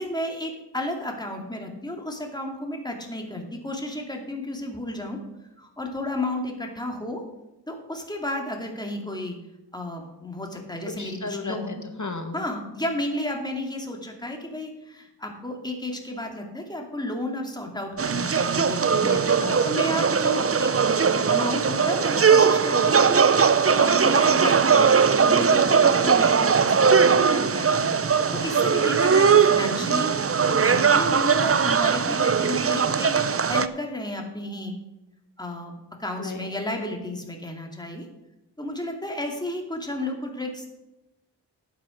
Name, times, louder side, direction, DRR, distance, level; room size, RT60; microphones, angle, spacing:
voice 1, 0.0-5.2 5.6-7.2 7.7-9.4 9.7-11.8 12.3-19.1 19.6-23.2 23.8-28.0 28.3-30.1 30.4-33.2 33.5-34.7 35.4-38.1 38.6-40.7, left 1 dB, 10° left, 2 dB, 2.5 m, -32 dB
voice 2, 11.0-12.4 19.0-19.8 36.2-36.5, left 3 dB, 45° left, 5 dB, 1.6 m, -34 dB
sound 1, 18.0-33.7, right 6 dB, 35° right, 0.6 m, -20 dB
11.5 x 8.7 x 5.1 m, 0.97 s
cardioid pair, 40°, 41 cm